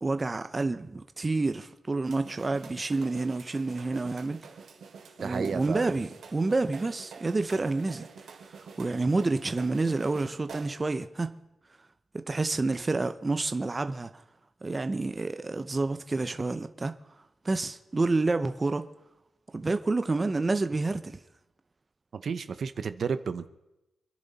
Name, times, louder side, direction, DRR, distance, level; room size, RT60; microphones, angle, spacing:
voice 1, 0.0-4.4 5.2-8.0 8.8-11.4 12.1-14.1 14.6-16.9 17.4-18.9 19.5-21.2, right 3 dB, 25° right, 0.7 m, -29 dB
sound 1, 2.0-10.9, right 5 dB, 75° right, 2.6 m, -47 dB
voice 2, 5.2-5.9 22.1-23.5, right 6 dB, 55° right, 0.8 m, -32 dB
26.5 x 10.5 x 4.1 m
wide cardioid pair, 120°, 0 cm